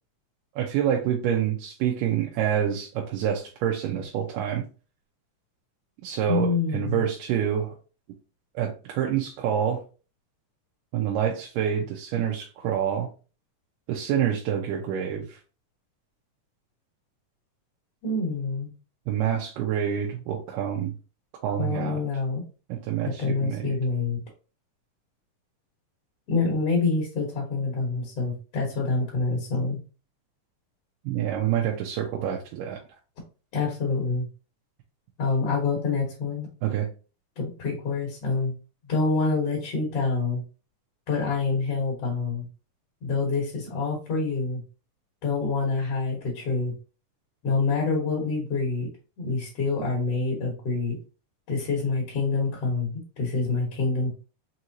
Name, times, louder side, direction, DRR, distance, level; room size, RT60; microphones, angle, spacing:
voice 1, 0.6-4.7 6.0-7.7 8.6-9.8 10.9-13.1 13.9-15.4 19.1-20.9 21.4-22.0 22.7-23.8 31.1-32.8 36.6-36.9, right 9 dB, 85° right, 0 dB, 2.2 m, -27 dB
voice 2, 6.2-7.1 18.0-18.7 21.6-22.4 23.0-24.2 26.3-29.8 33.5-34.3 35.2-36.5 37.4-38.5 38.9-40.4 41.1-42.5 43.0-44.6 45.2-46.7 47.4-48.9 49.2-51.0 51.5-54.1, left 4 dB, 55° left, -1 dB, 1.9 m, -26 dB
5.6 x 3.0 x 2.6 m, 0.34 s
omnidirectional pair, 3.8 m